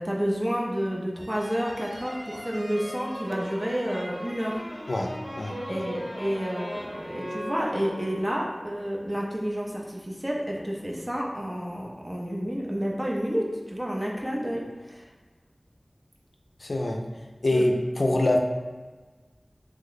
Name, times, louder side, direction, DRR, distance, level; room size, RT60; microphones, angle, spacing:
voice 1, 0.0-4.6 5.7-15.0 17.5-17.6, equal, 25° right, -2 dB, 0.5 m, -30 dB
sound 1, 1.1-8.3, equal, 10° left, 0.7 m, -38 dB
voice 2, 16.6-17.0 17.4-18.4, left 1 dB, 85° left, 1 dB, 0.3 m, -24 dB
2.9 x 2.1 x 3.9 m, 1.3 s
wide cardioid pair, 45°, 0 cm